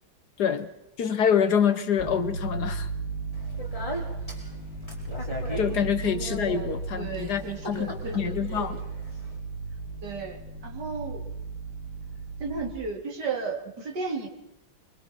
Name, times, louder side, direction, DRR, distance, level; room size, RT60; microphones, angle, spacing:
voice 1, 0.4-0.7 1.0-2.9 5.6-8.8, left 7 dB, 60° left, 1.3 m, -26 dB
sound 1, 2.0-12.8, right 4 dB, 35° right, 4.9 m, -35 dB
Speech, 3.3-9.4, equal, 15° left, 4.3 m, -39 dB
voice 2, 7.0-8.3 10.0-11.2 12.4-14.3, right 4 dB, 50° right, 3.5 m, -34 dB
25.5 x 23.5 x 4.5 m
omnidirectional pair, 2.3 m